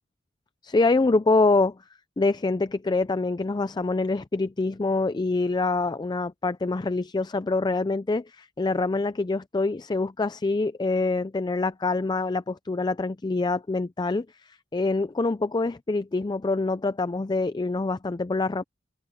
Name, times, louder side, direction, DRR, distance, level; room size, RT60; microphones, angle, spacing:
voice 1, 0.6-1.8 2.2-18.6, left 3 dB, 20° left, 0.4 m, -25 dB
head